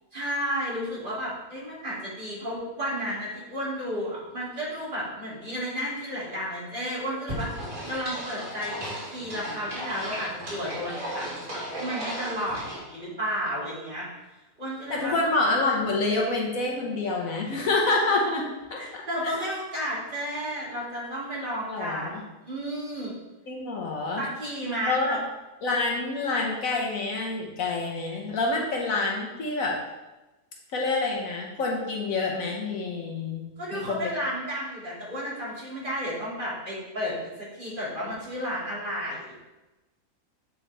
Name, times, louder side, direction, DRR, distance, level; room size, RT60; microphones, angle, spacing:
voice 1, 0.1-8.8 9.1-14.1 14.6-15.1 18.7-23.1 24.2-25.2 33.6-39.5, equal, 35° right, -8 dB, 2.7 m, -32 dB
sound 1, 7.3-12.8, equal, 65° right, 3.1 m, -35 dB
voice 2, 14.9-18.4 18.7-19.3 21.7-22.2 23.5-24.2 24.9-25.1 25.6-29.8 30.7-34.0, left 3 dB, 65° left, -1 dB, 1.4 m, -27 dB
8.6 x 4.6 x 3.4 m, 1.1 s
omnidirectional pair, 1.6 m